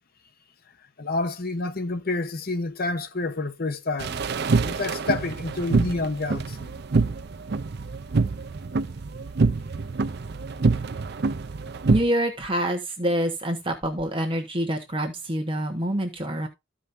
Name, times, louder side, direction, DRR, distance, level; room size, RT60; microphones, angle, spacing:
voice 1, 1.0-4.2 4.6-6.7, left 3 dB, 50° left, 1.0 m, -28 dB
sound 1, 4.0-12.0, right 3 dB, 55° right, 0.6 m, -26 dB
voice 2, 11.9-16.5, right 1 dB, 25° right, 1.3 m, -26 dB
14.5 x 5.2 x 2.7 m
head